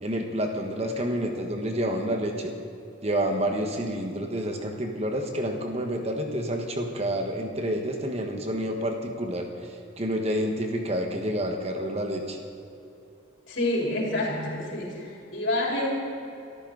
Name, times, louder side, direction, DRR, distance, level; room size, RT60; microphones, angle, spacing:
voice 1, 0.0-2.5 3.0-12.4, equal, 30° right, 3 dB, 1.5 m, -29 dB
voice 2, 13.5-15.9, left 1 dB, 65° left, -3 dB, 4.5 m, -28 dB
24.5 x 14.0 x 4.1 m, 2.7 s
head